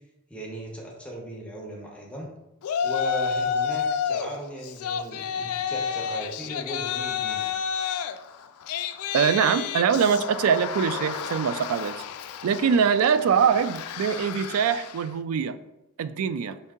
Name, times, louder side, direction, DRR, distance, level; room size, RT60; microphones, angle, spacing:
voice 1, 0.3-2.3 2.8-7.5, equal, 5° left, -2 dB, 0.7 m, -37 dB
Yell, 2.6-4.3 4.6-15.1, left 7 dB, 90° left, 0.3 m, -30 dB
voice 2, 9.1-11.9 12.4-15.6 16.0-16.6, right 7 dB, 85° right, 13 dB, 0.3 m, -23 dB
5.4 x 2.7 x 3.5 m, 0.99 s
head